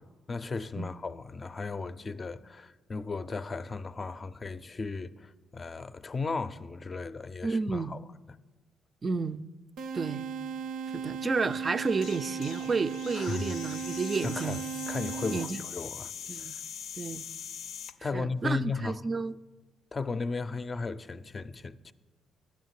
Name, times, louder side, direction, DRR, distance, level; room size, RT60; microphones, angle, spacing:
voice 1, 0.3-8.0 13.1-13.6 14.2-16.1 16.4-16.6 18.0-19.0 19.9-21.9, left 4 dB, 30° left, 0.5 m, -36 dB
voice 2, 7.4-8.0 9.0-9.5 9.9-10.3 10.9-14.6 15.3-15.6 16.3-16.6 17.0-17.3 18.1-19.4, right 4 dB, 35° right, 0.4 m, -31 dB
sound 1, 9.8-15.8, right 6 dB, 80° right, 0.6 m, -37 dB
sound 2, 11.8-18.0, left 8 dB, 85° left, 0.5 m, -42 dB
10.5 x 7.2 x 8.1 m
cardioid pair, 90°, 0 cm